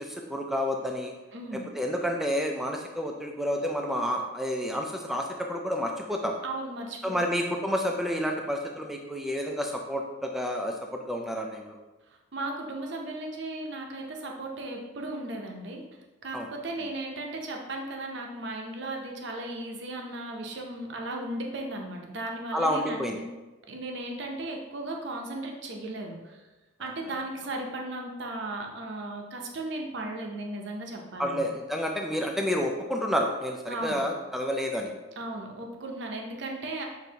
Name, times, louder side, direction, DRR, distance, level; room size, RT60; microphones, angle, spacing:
voice 1, 0.0-1.1 1.7-6.3 7.0-11.8 16.3-16.5 22.5-23.2 26.8-26.9 31.2-34.9, equal, ahead, 2 dB, 0.3 m, -30 dB
voice 2, 1.3-1.6 6.4-7.4 12.1-15.8 16.2-23.2 23.7-26.4 26.8-31.4 33.7-34.0 35.2-36.9, right 2 dB, 55° right, 1 dB, 0.6 m, -36 dB
6.0 x 2.6 x 2.8 m, 1.2 s
head